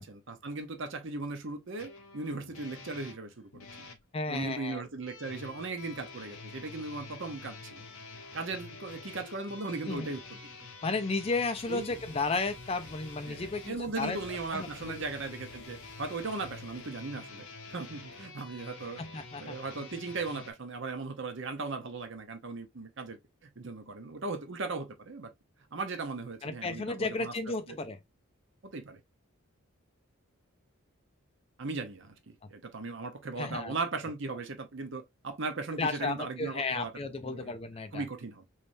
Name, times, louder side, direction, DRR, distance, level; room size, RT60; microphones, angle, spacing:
voice 1, 0.0-3.9 4.3-7.8 8.3-10.4 11.7-12.0 13.2-25.3 25.7-27.8 28.6-29.0 31.6-37.0 37.2-37.5 37.9-38.5, right 3 dB, 55° right, 0.8 m, -38 dB
sound 1, 1.8-4.0 5.1-20.5, left 4 dB, 75° left, 0.8 m, -47 dB
voice 2, 4.1-4.8 9.9-10.1 10.8-14.2 14.5-15.0 19.0-19.6 26.4-28.0 33.4-33.8 35.8-38.0, left 3 dB, 25° left, 0.4 m, -33 dB
sound 2, 11.4-17.2, equal, 10° left, 1.1 m, -57 dB
3.3 x 3.2 x 2.6 m
head